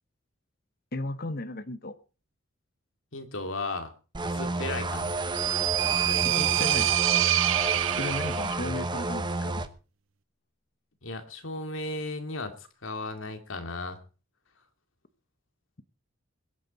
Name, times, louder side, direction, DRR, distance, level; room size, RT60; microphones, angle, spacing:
voice 1, 0.9-1.9 6.2-6.9 8.0-9.7, left 2 dB, 45° left, 12 dB, 1.0 m, -35 dB
voice 2, 3.1-3.9 4.2-5.1 5.8-6.2 11.0-14.0, left 2 dB, 70° left, 6 dB, 2.5 m, -35 dB
sound 1, 4.1-9.7, right 2 dB, 20° right, 0.9 m, -31 dB
sound 2, 5.0-8.7, right 13 dB, 70° right, 0.6 m, -26 dB
22.0 x 9.2 x 4.1 m, 0.34 s
head